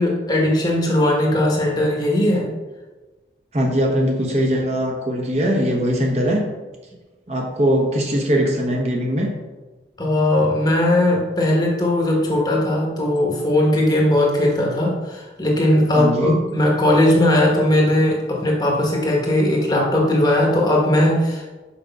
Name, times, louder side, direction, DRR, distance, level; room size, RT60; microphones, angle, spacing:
voice 1, 0.0-2.5 10.0-21.5, left 1 dB, 20° left, -2 dB, 1.3 m, -18 dB
voice 2, 3.5-6.5 7.3-9.3 15.9-16.4, equal, 35° right, 0 dB, 1.1 m, -20 dB
6.1 x 5.1 x 5.4 m, 1.2 s
head